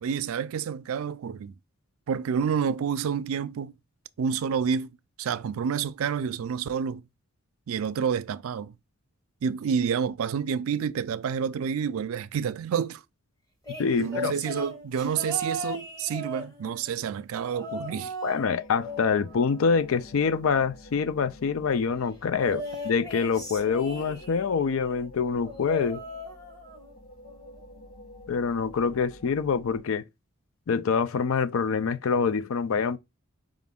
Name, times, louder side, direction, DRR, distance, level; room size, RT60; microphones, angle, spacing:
voice 1, 0.0-1.5 2.1-3.7 4.2-4.9 5.2-7.0 7.7-8.7 9.4-13.0 14.0-18.1, right 7 dB, 85° right, 0.4 m, -29 dB
sound 1, 13.6-16.9 17.5-18.5 18.8-20.3 22.4-24.5 25.4-26.9 27.2-27.6 28.7-28.8, equal, 15° left, 1.1 m, -38 dB
voice 2, 13.8-14.3 18.2-26.0 28.3-30.0 30.7-33.0, left 5 dB, 80° left, 0.4 m, -26 dB
sound 2, 18.4-29.8, left 1 dB, 35° left, 2.9 m, -49 dB
5.0 x 2.5 x 3.5 m
head